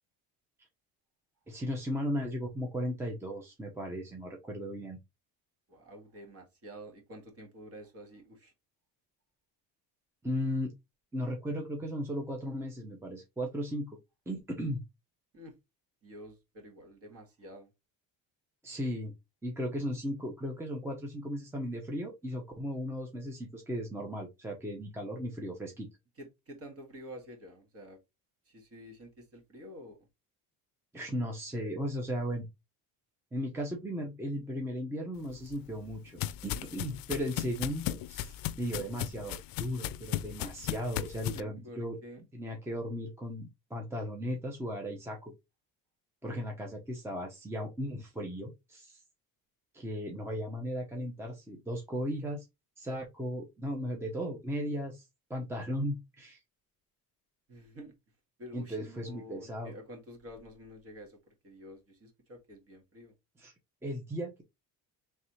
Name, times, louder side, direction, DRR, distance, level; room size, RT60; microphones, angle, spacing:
voice 1, 1.5-5.0 10.2-10.7 11.1-14.0 14.3-14.8 18.6-19.1 19.4-25.9 30.9-32.5 33.3-42.0 42.3-45.3 46.2-49.0 49.7-52.4 52.8-55.0 55.3-56.4 58.5-59.7 63.4-63.5 63.8-64.4, equal, 5° right, 0.7 m, -36 dB
voice 2, 5.7-8.5 15.3-15.6 16.0-17.7 26.2-28.0 28.5-30.0 41.3-42.2 57.5-58.0 58.4-63.1, equal, 35° right, 1.7 m, -49 dB
sound 1, 35.3-41.4, left 13 dB, 65° left, 0.5 m, -37 dB
4.1 x 3.3 x 3.0 m
cardioid pair, 140°, 38 cm